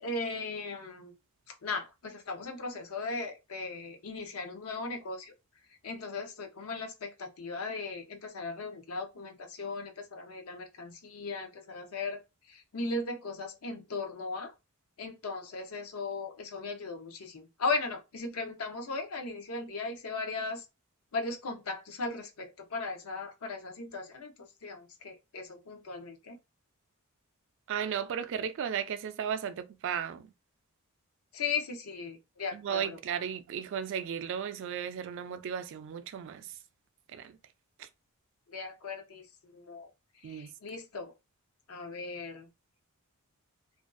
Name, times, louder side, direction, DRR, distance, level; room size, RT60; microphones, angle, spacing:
voice 1, 0.0-1.1 1.6-5.3 5.8-12.2 12.5-14.5 15.0-20.6 21.1-26.4 31.3-33.0 38.5-39.9 40.2-41.1 41.7-42.5, left 3 dB, 75° left, 0.6 m, -37 dB
voice 2, 27.7-30.3 32.5-36.5 37.1-37.4 37.8-37.9 40.2-40.5, right 8 dB, 60° right, 0.3 m, -35 dB
2.5 x 2.3 x 2.4 m
head